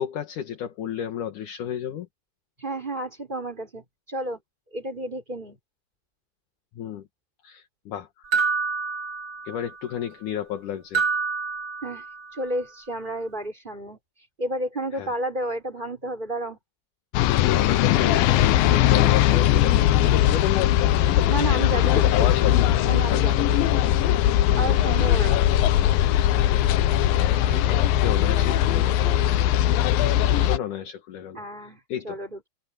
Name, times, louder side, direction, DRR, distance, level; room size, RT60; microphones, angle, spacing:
voice 1, 0.0-2.1 6.8-7.1 7.4-8.2 9.5-11.0 14.9-15.1 17.3-21.0 21.8-22.7 23.1-23.3 23.8-24.2 27.6-29.1 30.3-31.4 31.9-32.2, left 10 dB, 65° left, 3.0 m, -31 dB
voice 2, 2.6-4.4 4.7-5.6 11.8-16.6 21.3-22.3 22.8-23.6 24.1-24.3 24.5-25.4 27.5-27.8 31.3-32.5, right 1 dB, 10° right, 5.3 m, -32 dB
sound 1, 8.3-9.8 10.9-12.4, right 4 dB, 35° right, 3.6 m, -27 dB
sound 2, 17.1-30.6, left 12 dB, 90° left, 2.7 m, -20 dB
omnidirectional pair, 4.0 m